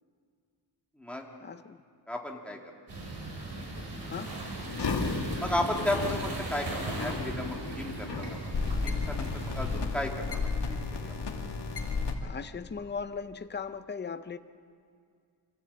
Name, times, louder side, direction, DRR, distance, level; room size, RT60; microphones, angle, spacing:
voice 1, 1.4-1.8 4.1-4.3 12.2-14.4, left 5 dB, 25° left, 10 dB, 0.6 m, -38 dB
voice 2, 2.1-2.6 5.4-11.2, left 1 dB, 5° left, 0 dB, 2.2 m, -34 dB
sound 1, 2.9-9.8, right 2 dB, 75° right, 4.8 m, -38 dB
sound 2, 4.7-12.1, left 4 dB, 75° left, 2.2 m, -33 dB
25.5 x 15.5 x 8.6 m, 2.2 s
wide cardioid pair, 175°, 41 cm